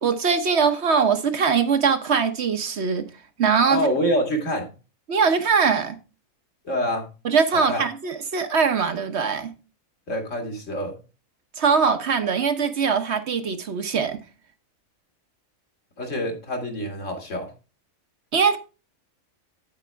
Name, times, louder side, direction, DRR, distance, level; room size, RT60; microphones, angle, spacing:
voice 1, 0.0-3.0 3.4-3.9 5.1-6.0 7.2-9.5 11.6-14.2 18.3-18.6, right 6 dB, 55° right, 1.1 m, -21 dB
voice 2, 3.7-4.7 6.6-7.1 7.5-7.8 10.1-10.9 16.0-17.5, equal, 65° left, 2.4 m, -26 dB
8.8 x 8.3 x 3.4 m
omnidirectional pair, 1.4 m